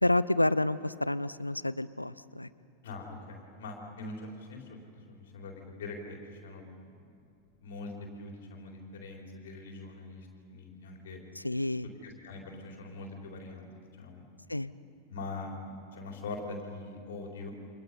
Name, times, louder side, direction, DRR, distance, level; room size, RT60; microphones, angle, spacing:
voice 1, 0.0-2.5 11.4-11.9 14.5-14.7, left 1 dB, 85° left, 18 dB, 0.5 m, -29 dB
voice 2, 2.8-6.6 7.6-11.2 12.0-14.2 15.1-17.5, left 2 dB, 60° left, 1 dB, 4.0 m, -43 dB
29.0 x 25.5 x 5.4 m, 2.5 s
figure-of-eight pair, 90°, 0 cm